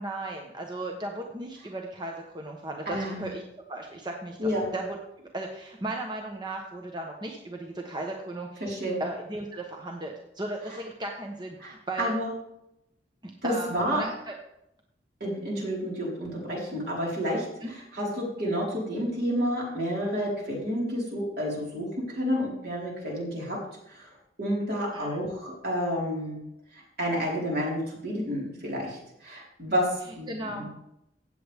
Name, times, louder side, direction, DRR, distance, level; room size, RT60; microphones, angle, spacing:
voice 1, 0.0-3.4 3.7-8.7 9.0-12.1 13.4-14.3 17.6-17.7 24.9-25.3 30.3-30.7, right 2 dB, 25° right, 1 dB, 1.0 m, -36 dB
voice 2, 2.9-3.2 4.4-4.7 8.6-9.0 11.6-11.7 12.0-12.3 13.4-14.0 15.2-17.5 18.0-23.6 24.4-26.4 27.0-29.0 29.2-29.9 30.1-30.7, equal, 60° right, -4 dB, 4.4 m, -29 dB
16.0 x 7.8 x 3.5 m, 0.82 s
head